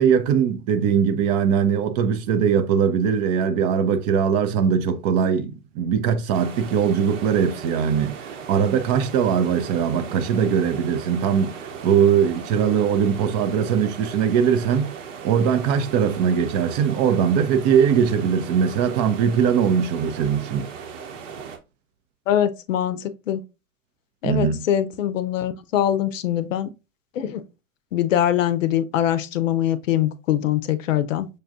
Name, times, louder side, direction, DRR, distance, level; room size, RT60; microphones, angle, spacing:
voice 1, 0.0-14.9 15.2-20.7 24.2-24.7, right 7 dB, 35° right, 0.4 m, -21 dB
sound 1, 6.3-21.6, right 6 dB, 70° right, 1.0 m, -37 dB
voice 2, 22.3-23.4 24.2-26.7 27.1-27.4 27.9-31.3, left 11 dB, 70° left, 0.6 m, -23 dB
6.3 x 2.3 x 2.5 m
hypercardioid pair, 95°, 40 cm